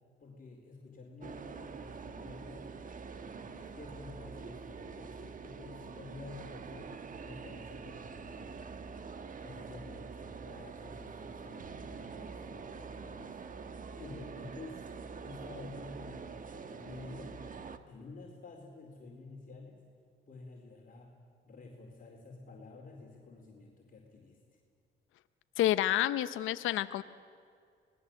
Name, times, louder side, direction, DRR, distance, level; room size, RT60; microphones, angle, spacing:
voice 1, 0.2-2.7 3.2-6.9 7.2-9.0 9.4-13.5 14.0-14.8 15.2-17.4 17.9-19.8 20.3-21.1 21.4-24.4, left 3 dB, 45° left, -1 dB, 4.2 m, -50 dB
sound 1, 1.2-17.8, right 5 dB, 40° right, 1.4 m, -45 dB
voice 2, 25.6-27.0, left 13 dB, 85° left, 13 dB, 0.8 m, -29 dB
25.0 x 19.5 x 7.7 m, 2.2 s
cardioid pair, 90°, 20 cm